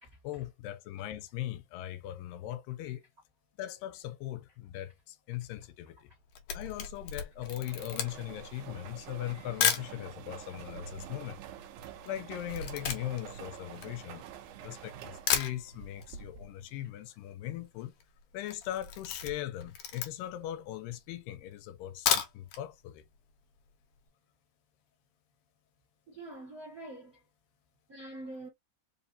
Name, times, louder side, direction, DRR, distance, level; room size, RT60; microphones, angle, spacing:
voice 1, 0.2-3.1 3.6-6.1 6.5-11.4 12.1-14.2 14.6-17.9 18.3-23.1, left 13 dB, 85° left, 2.3 m, -39 dB
Camera, 6.1-9.9 10.6-10.7 10.9-14.6 15.0-15.1 15.3-16.1 16.4-16.5 16.8-16.9 17.0-17.5 17.8-18.0 18.4-20.4 20.9-21.0 21.8-22.6 23.0-23.1 23.4-23.5, left 8 dB, 70° left, 1.7 m, -33 dB
sound 1, 7.4-16.7, right 8 dB, 75° right, 1.9 m, -47 dB
voice 2, 26.1-27.2 27.9-28.5, right 2 dB, 50° right, 1.0 m, -45 dB
5.3 x 2.6 x 2.6 m
omnidirectional pair, 4.0 m